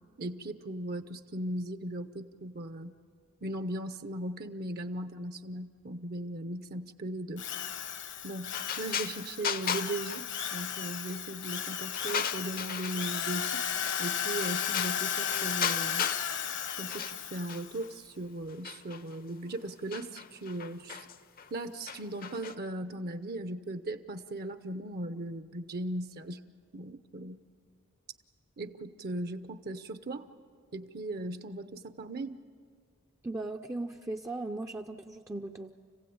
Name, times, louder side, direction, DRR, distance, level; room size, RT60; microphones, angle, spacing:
voice 1, 0.2-2.9 3.4-7.5 8.2-13.6 14.0-16.1 16.8-21.0 21.5-26.4 26.7-27.4 28.6-30.3 30.7-32.4, right 1 dB, 50° right, 9 dB, 0.8 m, -38 dB
Drill, 7.4-17.8, left 9 dB, 60° left, 1.1 m, -35 dB
sound 1, 8.5-10.9 11.3-13.3 13.8-14.1 14.4-16.3 16.6-17.9 18.5-22.5, left 7 dB, 45° left, 0.7 m, -37 dB
voice 2, 33.2-35.7, right 2 dB, 15° right, 2 dB, 0.5 m, -37 dB
29.5 x 16.0 x 8.7 m, 2.1 s
head